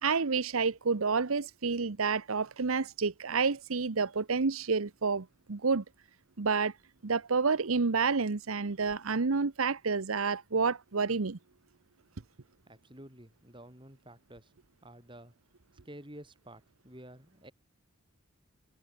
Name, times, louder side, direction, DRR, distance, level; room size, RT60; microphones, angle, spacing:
voice 1, 0.0-5.8 6.4-6.7 7.0-11.4, right 4 dB, 90° right, 0.9 m, -29 dB
voice 2, 12.7-14.5 14.8-15.3 15.8-17.5, right 1 dB, 25° right, 7.8 m, -51 dB
head